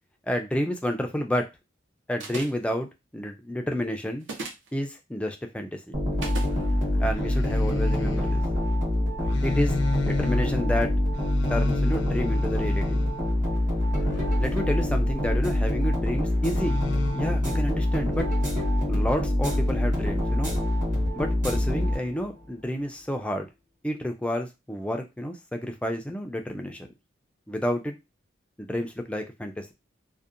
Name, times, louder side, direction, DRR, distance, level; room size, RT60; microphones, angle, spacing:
voice 1, 0.3-1.5 2.1-4.3 4.7-5.9 7.0-8.4 9.4-9.8 10.0-10.9 11.5-13.0 14.4-16.8 17.1-18.3 18.9-20.6 21.1-23.5 23.8-26.9 27.5-28.0 28.6-29.7, equal, 5° left, 4 dB, 0.3 m, -30 dB
sound 1, 2.2-2.7 4.2-4.7 6.2-6.5, right 3 dB, 65° right, 0.6 m, -35 dB
sound 2, 5.9-22.4, left 1 dB, 45° right, 0.9 m, -25 dB
sound 3, 6.2-15.8 16.5-17.6, left 3 dB, 70° left, 0.5 m, -34 dB
2.7 x 2.1 x 2.4 m, 0.24 s
head